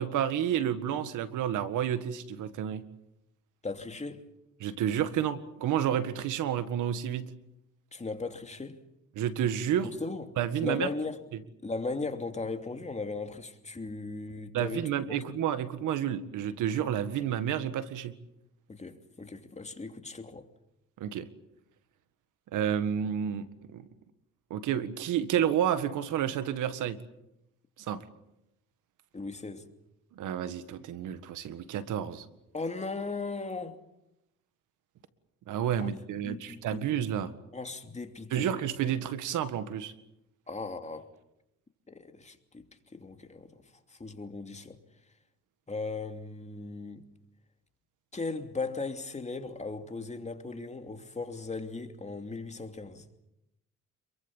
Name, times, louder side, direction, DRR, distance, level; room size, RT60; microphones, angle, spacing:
voice 1, 0.0-2.8 4.6-7.3 9.2-9.9 10.4-10.9 14.5-18.1 21.0-21.3 22.5-23.8 24.5-27.0 27.9-28.1 30.2-32.3 35.5-37.3 38.3-39.9, right 9 dB, 85° right, 1.8 m, -30 dB
voice 2, 3.6-4.3 7.9-8.8 10.0-11.2 11.6-15.2 18.7-20.5 29.1-29.7 32.5-33.8 35.8-35.9 36.2-36.9 37.5-38.5 40.5-41.1 41.9-42.6 42.9-43.6 43.9-44.8 45.7-47.0 48.1-53.1, left 3 dB, 20° left, 2.8 m, -37 dB
27.5 x 23.0 x 7.3 m
cardioid pair, 90°, 30 cm